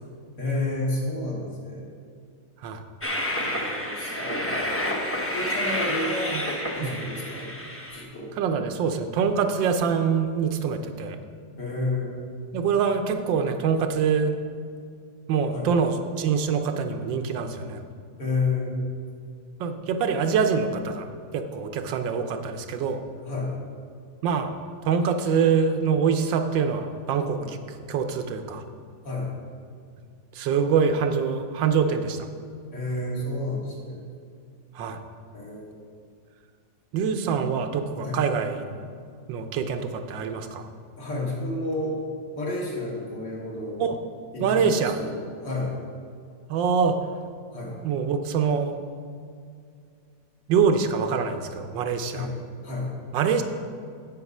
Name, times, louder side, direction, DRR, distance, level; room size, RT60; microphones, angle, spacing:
voice 1, 0.4-1.8 3.3-4.6 5.3-6.3 6.8-7.5 7.8-8.3 11.6-12.2 15.5-15.7 18.2-18.9 23.2-23.5 27.4-27.5 29.0-29.3 32.7-34.0 35.3-35.8 37.2-37.5 38.0-38.2 41.0-42.0 42.3-43.8 44.3-45.7 47.5-47.8 52.1-52.3 52.6-52.9, left 2 dB, 65° left, -5 dB, 2.8 m, -30 dB
Train, 3.0-8.0, left 1 dB, 20° left, 0.4 m, -29 dB
voice 2, 8.4-11.2 12.5-14.3 15.3-17.8 19.6-21.1 21.3-23.0 24.2-24.5 24.8-27.6 27.9-28.6 30.3-32.3 34.7-35.0 36.9-38.7 39.3-40.7 43.8-44.0 44.4-45.0 46.5-47.0 47.8-48.7 50.5-52.3 53.1-53.4, right 6 dB, 85° right, 7 dB, 1.4 m, -24 dB
8.2 x 8.2 x 5.4 m, 2.3 s
omnidirectional pair, 2.0 m